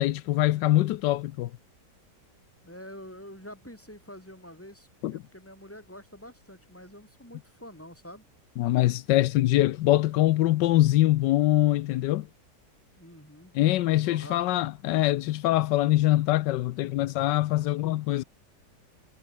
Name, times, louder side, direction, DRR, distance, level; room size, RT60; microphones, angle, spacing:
voice 1, 0.0-1.5 5.0-5.1 8.6-12.3 13.5-18.2, left 15 dB, 85° left, 1.3 m, -23 dB
voice 2, 2.6-8.2 13.0-14.7, left 1 dB, 5° left, 5.4 m, -46 dB
omnidirectional pair, 1.8 m